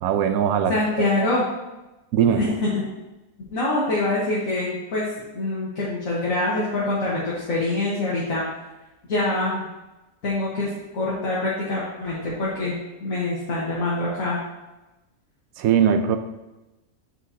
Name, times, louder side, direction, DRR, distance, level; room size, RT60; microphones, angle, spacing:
voice 1, 0.0-1.1 2.1-2.4 15.6-16.2, right 8 dB, 80° right, 8 dB, 1.0 m, -20 dB
voice 2, 0.7-1.4 2.3-2.8 3.5-5.1 5.3-8.5 9.1-9.6 10.2-12.7 13.0-14.4, left 2 dB, 70° left, -7 dB, 1.7 m, -25 dB
7.4 x 6.2 x 2.8 m, 1.0 s
omnidirectional pair, 1.5 m